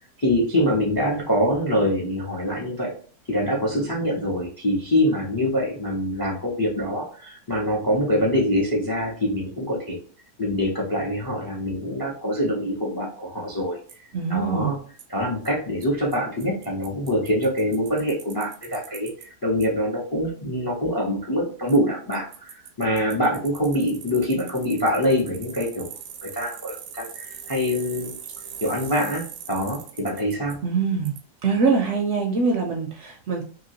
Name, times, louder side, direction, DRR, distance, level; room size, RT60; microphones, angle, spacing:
voice 1, 0.2-2.9 3.3-10.0 10.4-13.8 14.3-14.8 15.1-25.9 26.2-28.1 28.6-30.6, equal, 30° left, -2 dB, 0.4 m, -24 dB
Bicycle, 13.9-14.0 15.0-15.1 15.5-15.6 15.8-15.9 16.1-16.2 16.4-19.3 19.6-19.7 21.7-21.8 22.1-30.5 31.1-31.2, right 8 dB, 85° right, 1.1 m, -41 dB
voice 2, 14.1-14.7 30.6-31.1 31.4-33.4, right 4 dB, 65° right, 2 dB, 0.7 m, -23 dB
2.9 x 2.8 x 2.8 m, 0.43 s
omnidirectional pair, 1.6 m